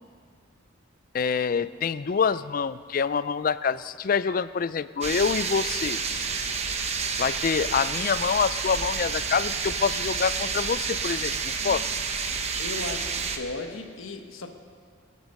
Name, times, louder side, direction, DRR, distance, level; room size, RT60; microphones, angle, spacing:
voice 1, 1.1-6.0 7.2-11.9, left 6 dB, 45° left, 16 dB, 0.3 m, -26 dB
sound 1, 5.0-13.4, right 5 dB, 30° right, 0.9 m, -29 dB
voice 2, 12.6-14.5, left 3 dB, 80° left, 6 dB, 1.2 m, -36 dB
22.5 x 8.2 x 6.6 m, 2.1 s
head